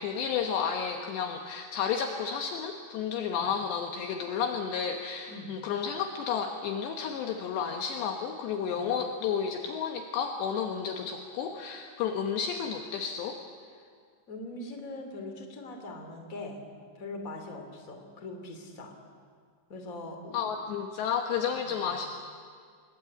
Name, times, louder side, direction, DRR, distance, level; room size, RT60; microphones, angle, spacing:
voice 1, 0.0-13.4 20.3-22.2, left 7 dB, 70° left, 4 dB, 3.2 m, -32 dB
voice 2, 14.3-16.6 16.9-18.9 19.7-20.4 21.5-21.9, left 2 dB, 20° left, 4 dB, 2.5 m, -42 dB
28.5 x 21.5 x 8.7 m, 2.1 s
omnidirectional pair, 5.6 m